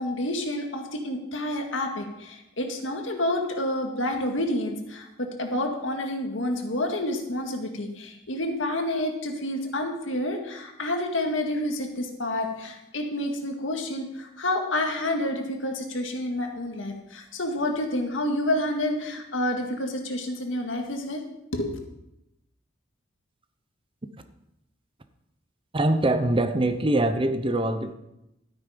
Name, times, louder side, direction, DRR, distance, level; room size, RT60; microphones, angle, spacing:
voice 1, 0.0-21.2 21.5-21.8, left 1 dB, 75° left, 3 dB, 2.0 m, -29 dB
voice 2, 25.7-27.9, right 1 dB, 30° right, 9 dB, 0.8 m, -23 dB
12.5 x 9.6 x 5.2 m, 0.87 s
head